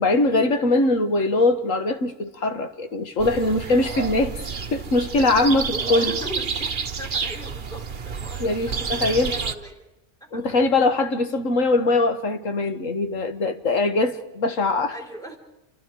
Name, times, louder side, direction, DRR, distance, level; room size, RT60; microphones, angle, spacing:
voice 1, 0.0-4.4 4.7-6.1 8.4-9.3 10.3-14.9, left 2 dB, 70° left, 1.9 m, -22 dB
sound 1, 3.2-9.6, right 5 dB, 40° right, 1.1 m, -29 dB
voice 2, 5.7-8.5 8.8-9.8 10.3-10.4 14.8-15.4, equal, ahead, 3.9 m, -38 dB
29.0 x 25.0 x 4.7 m
omnidirectional pair, 1.4 m